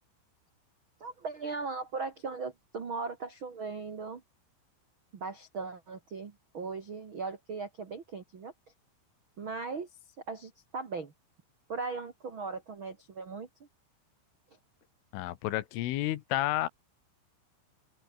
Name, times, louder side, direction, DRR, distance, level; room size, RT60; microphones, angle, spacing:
voice 1, 1.0-4.2 5.1-8.5 9.4-9.9 10.3-11.1 11.7-13.5, right 4 dB, 85° right, 1.1 m, -38 dB
voice 2, 15.1-16.7, left 15 dB, 80° left, 3.7 m, -31 dB
open air
omnidirectional pair, 5.8 m